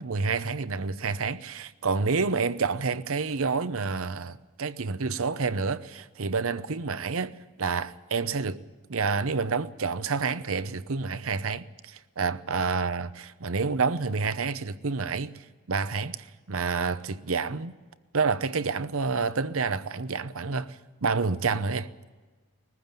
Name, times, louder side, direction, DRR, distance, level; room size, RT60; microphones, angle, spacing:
voice 1, 0.0-7.3 7.6-8.6 8.9-17.7 18.1-21.9, right 4 dB, 65° right, 0.8 m, -29 dB
21.0 x 15.0 x 9.0 m
head